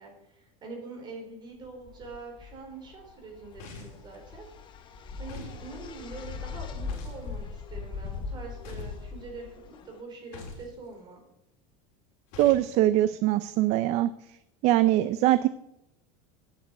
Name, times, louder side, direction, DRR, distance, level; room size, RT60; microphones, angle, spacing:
voice 1, 0.0-4.5 4.7-4.9 5.2-11.2, right 3 dB, 25° right, 1 dB, 4.0 m, -44 dB
sound 1, 1.6-10.0, left 5 dB, 30° left, 1.1 m, -40 dB
sound 2, 3.6-4.1 5.3-5.6 6.9-7.3 8.6-9.0 10.3-10.7 12.3-12.7, left 4 dB, 60° left, 3.8 m, -43 dB
voice 2, 12.4-14.1 14.6-15.5, right 14 dB, 40° right, 14 dB, 0.4 m, -22 dB
9.1 x 8.8 x 8.0 m, 0.83 s
supercardioid pair, 160°, 17 cm